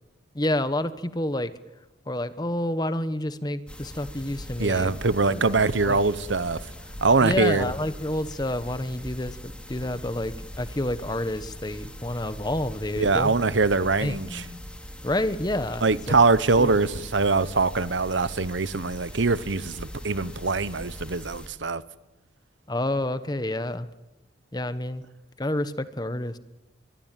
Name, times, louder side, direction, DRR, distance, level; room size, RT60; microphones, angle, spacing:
voice 1, 0.3-1.5 2.1-4.9 5.4-5.5 5.8-6.0 7.2-13.3 14.0-14.2 15.0-15.9 16.6-16.8 22.7-23.9 24.5-25.0 25.4-26.4, left 1 dB, 20° left, 1.0 m, -29 dB
sound 1, 3.7-21.5, equal, 5° left, 2.7 m, -41 dB
voice 2, 4.6-6.7 7.0-7.6 13.0-14.4 15.8-21.8, right 3 dB, 90° right, 1.0 m, -23 dB
24.0 x 23.0 x 9.1 m
head